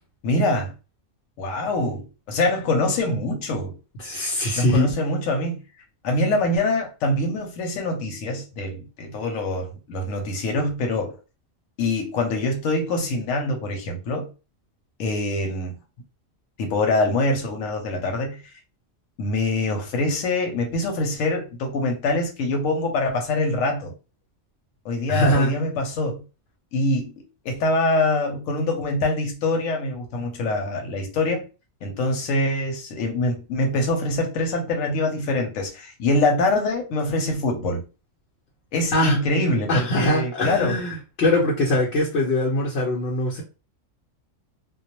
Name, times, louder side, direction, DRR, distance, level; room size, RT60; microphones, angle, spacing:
voice 1, 0.2-0.7 1.4-3.7 4.6-5.6 6.0-11.1 11.8-14.3 15.0-15.8 16.6-18.4 19.2-23.9 24.8-26.2 26.7-31.5 31.8-37.8 38.7-40.8, left 2 dB, 90° left, 1.0 m, -24 dB
voice 2, 4.0-4.9 25.1-25.5 38.9-39.2 39.7-43.4, left 1 dB, 60° left, 0.9 m, -22 dB
2.2 x 2.1 x 2.8 m
omnidirectional pair, 1.3 m